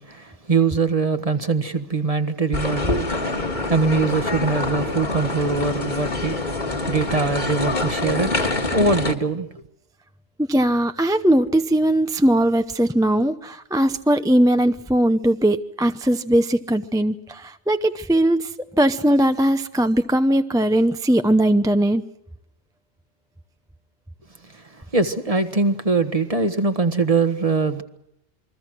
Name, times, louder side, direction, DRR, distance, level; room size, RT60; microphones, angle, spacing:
voice 1, 0.0-3.3 3.7-9.6 24.4-27.8, right 4 dB, 30° right, 1.5 m, -23 dB
sound 1, 2.5-9.2, left 2 dB, 40° left, 2.1 m, -25 dB
voice 2, 10.5-18.5 18.8-22.0, right 1 dB, 5° right, 0.6 m, -19 dB
28.5 x 22.0 x 6.2 m
omnidirectional pair, 1.2 m